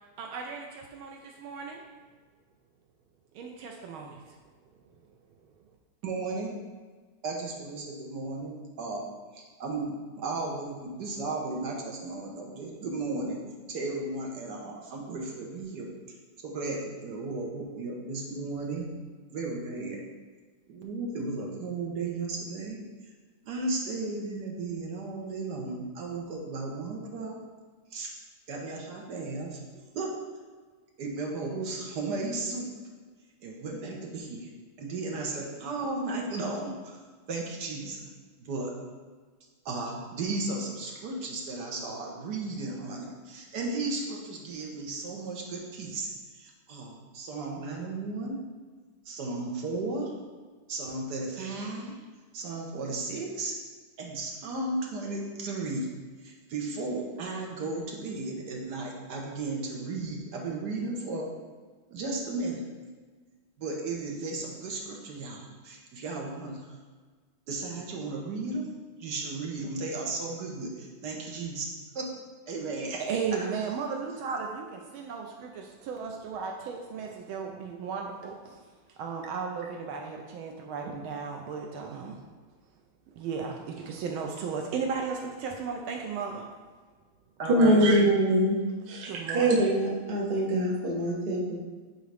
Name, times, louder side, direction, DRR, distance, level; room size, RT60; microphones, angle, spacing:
voice 1, 0.2-1.8 3.3-4.4 73.0-78.6 79.0-82.2 83.1-86.5 89.1-89.6, right 5 dB, 75° right, 2 dB, 1.3 m, -35 dB
voice 2, 6.0-6.5 7.2-9.0 9.3-13.4 13.7-15.9 16.4-18.9 19.3-20.0 20.7-22.8 23.4-27.4 27.9-28.1 28.5-29.6 29.9-30.1 31.0-32.7 33.4-34.5 34.8-37.0 37.3-38.0 38.4-38.7 39.6-46.1 46.3-48.4 49.0-50.1 50.7-51.9 52.3-53.5 54.0-55.9 56.2-61.3 61.9-62.6 63.6-66.6 67.5-68.7 69.0-71.7 71.9-72.1 72.5-73.0 87.4-87.9, right 3 dB, 60° right, -1 dB, 1.3 m, -34 dB
voice 3, 87.5-88.6 88.9-91.6, right 1 dB, 40° right, -3 dB, 0.8 m, -24 dB
9.1 x 3.8 x 3.3 m, 1.4 s
omnidirectional pair, 2.4 m